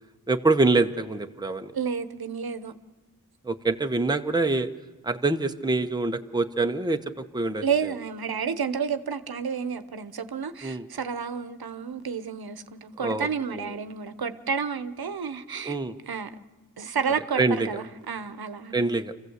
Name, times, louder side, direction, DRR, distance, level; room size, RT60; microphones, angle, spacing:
voice 1, 0.3-1.7 3.4-4.7 5.0-7.6 10.6-10.9 13.0-13.7 15.6-16.0 17.4-17.7 18.7-19.1, right 3 dB, 10° right, 0.9 m, -25 dB
voice 2, 1.7-2.7 7.6-15.8 16.1-16.3 16.8-18.8, right 6 dB, 70° right, 1.0 m, -30 dB
26.0 x 15.0 x 8.1 m
wide cardioid pair, 100°, 38 cm